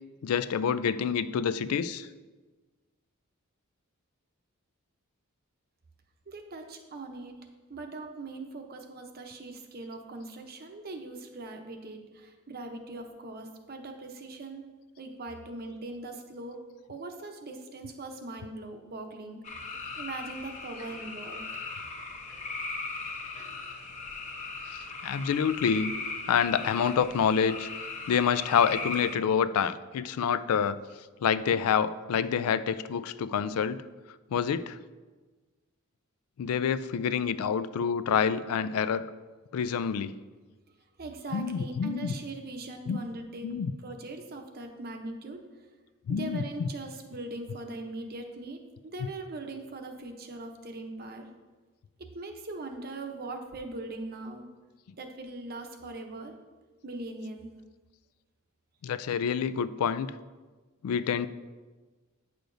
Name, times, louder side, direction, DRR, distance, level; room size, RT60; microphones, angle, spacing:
voice 1, 0.2-2.1 25.0-25.9 26.3-27.7 28.1-30.8 31.2-33.8 34.3-34.8 36.4-39.1 39.5-40.2 41.3-42.1 42.9-43.0 43.4-43.7 46.1-46.4 58.8-60.1 60.8-61.3, left 7 dB, 75° left, 15 dB, 0.3 m, -27 dB
voice 2, 6.3-7.4 7.7-14.7 15.0-16.6 16.9-19.4 20.0-21.4 41.0-43.5 43.8-45.4 46.1-51.3 52.0-54.5 54.9-56.4 56.8-57.5, right 2 dB, 45° right, 4 dB, 0.7 m, -40 dB
sound 1, 19.4-29.2, left 3 dB, 35° left, 0.8 m, -38 dB
9.0 x 6.5 x 2.6 m, 1.3 s
head